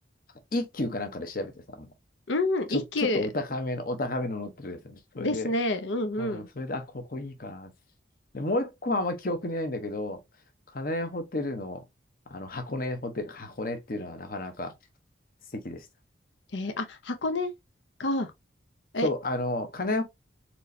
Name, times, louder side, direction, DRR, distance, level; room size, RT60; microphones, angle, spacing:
voice 1, 0.5-1.9 2.7-5.5 6.2-7.7 8.3-10.2 10.7-11.8 12.3-14.7 15.5-15.9 19.0-20.0, left 2 dB, 50° left, 0.9 m, -32 dB
voice 2, 2.3-3.3 5.2-6.5 16.5-17.5 18.0-18.3 18.9-19.1, left 2 dB, 75° left, 0.7 m, -28 dB
4.4 x 3.2 x 2.7 m
head